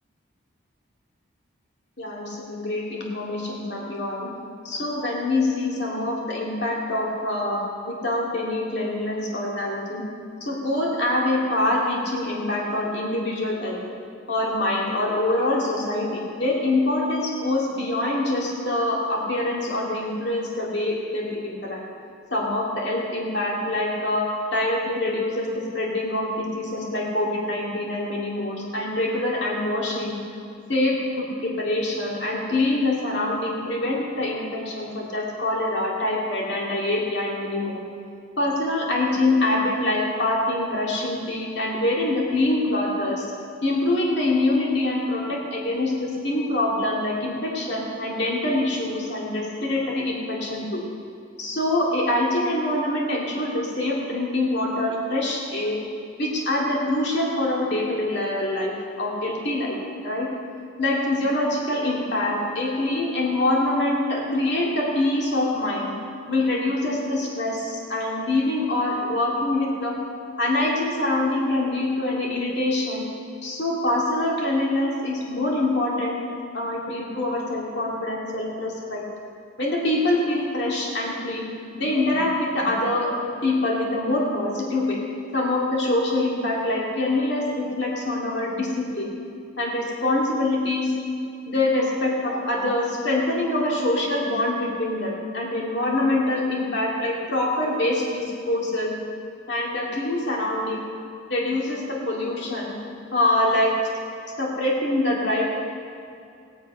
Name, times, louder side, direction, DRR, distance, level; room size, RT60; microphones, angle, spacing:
voice 1, 2.0-4.3 4.6-10.0 10.4-13.8 14.3-21.8 22.3-30.2 30.7-37.8 38.4-43.3 43.6-50.8 51.4-55.8 56.2-59.8 60.0-60.3 60.8-65.9 66.3-70.0 70.4-73.0 73.4-76.2 76.5-79.0 79.6-81.5 81.7-83.1 83.4-85.0 85.3-89.1 89.6-90.9 91.5-99.0 99.5-100.8 101.3-102.7 103.1-103.7 104.4-105.5, left 1 dB, 55° left, -3 dB, 2.2 m, -25 dB
16.5 x 9.9 x 5.5 m, 2.5 s
head